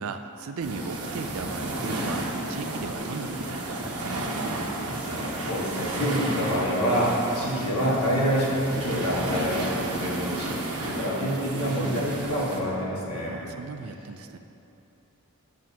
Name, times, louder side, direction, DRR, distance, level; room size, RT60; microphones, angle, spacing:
voice 1, 0.0-4.6 13.1-14.4, right 4 dB, 70° right, 7 dB, 0.5 m, -37 dB
sound 1, 0.6-12.6, right 1 dB, 85° right, 1.1 m, -32 dB
voice 2, 5.1-13.3, equal, 80° left, -5 dB, 1.7 m, -27 dB
9.1 x 7.4 x 2.9 m, 2.8 s
head